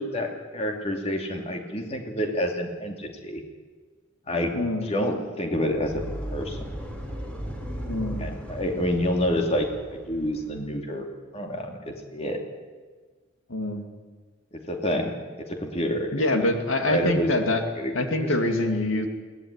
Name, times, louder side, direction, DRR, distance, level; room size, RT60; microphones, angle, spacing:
voice 1, 0.0-3.4 4.3-4.6 4.8-6.0 6.3-6.6 8.2-11.1 11.3-12.4 14.5-16.5 16.8-17.3 17.8-18.3, equal, 30° left, 3 dB, 2.7 m, -28 dB
voice 2, 4.5-4.9 7.9-8.3 13.5-13.9 16.1-17.6 17.9-19.1, left 1 dB, 80° left, 5 dB, 2.7 m, -25 dB
sound 1, 5.4-10.6, equal, 5° left, 3.5 m, -36 dB
21.5 x 18.5 x 9.8 m, 1.4 s
head